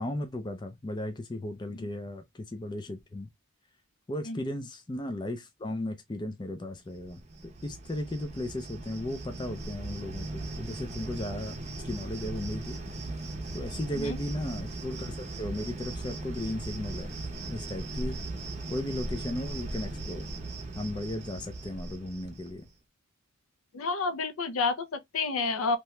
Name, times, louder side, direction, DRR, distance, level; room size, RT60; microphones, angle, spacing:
voice 1, 0.0-3.3 4.1-7.2 7.6-11.5 11.8-12.8 13.5-17.2 17.5-18.1 18.7-20.3 20.7-22.7, left 1 dB, 20° left, 0.4 m, -35 dB
Cricket, 7.0-22.7, right 2 dB, 30° right, 0.6 m, -38 dB
voice 2, 23.7-25.8, left 4 dB, 75° left, 0.5 m, -30 dB
2.8 x 2.2 x 3.1 m
head